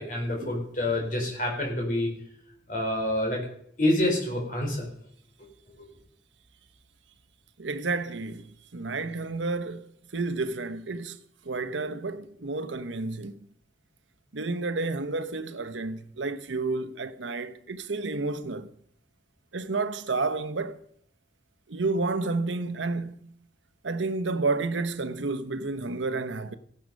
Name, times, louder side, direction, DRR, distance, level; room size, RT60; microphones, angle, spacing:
voice 1, 0.0-2.1 2.7-3.4 3.8-4.9, left 1 dB, 45° left, 4.3 m, -27 dB
voice 2, 7.6-11.2 11.4-13.4 14.3-18.7 19.5-20.8 21.7-23.3 23.8-26.6, right 3 dB, 90° right, 0.9 m, -31 dB
14.5 x 11.0 x 5.3 m
head